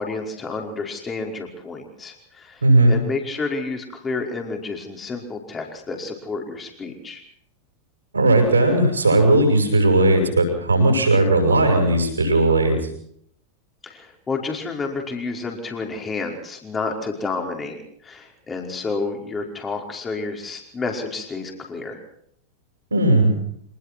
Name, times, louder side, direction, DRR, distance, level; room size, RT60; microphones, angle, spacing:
voice 1, 0.0-7.2 13.8-22.0, left 3 dB, 20° left, 2 dB, 5.2 m, -30 dB
voice 2, 2.6-3.0 8.1-12.8 22.9-23.3, right 2 dB, 75° right, 3 dB, 7.7 m, -17 dB
26.0 x 20.0 x 6.2 m, 0.69 s
figure-of-eight pair, 90°, 0 cm